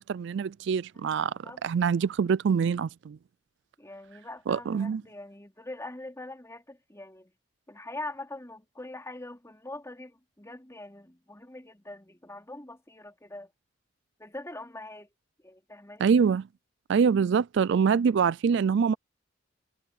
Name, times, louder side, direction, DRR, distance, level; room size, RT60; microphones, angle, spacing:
voice 1, 0.0-1.3 1.6-3.2 4.5-5.0 16.0-16.5 16.9-18.9, right 6 dB, 65° right, 0.3 m, -24 dB
voice 2, 0.9-1.6 3.8-7.3 7.7-13.5 14.2-15.1 15.4-16.1, left 2 dB, 15° left, 4.0 m, -43 dB
head